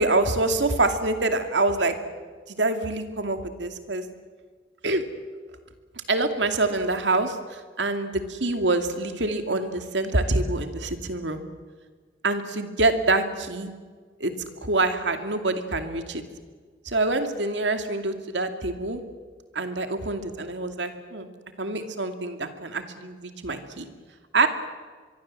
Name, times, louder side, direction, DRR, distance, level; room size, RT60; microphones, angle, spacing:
voice 1, 0.0-2.0 2.5-4.0 4.8-5.0 6.1-11.4 12.2-13.7 14.2-14.3 14.6-16.2 16.8-19.0 19.5-21.3 21.6-23.9 24.3-24.5, right 2 dB, 85° right, 7 dB, 2.5 m, -25 dB
25.0 x 22.5 x 7.6 m, 1.5 s
head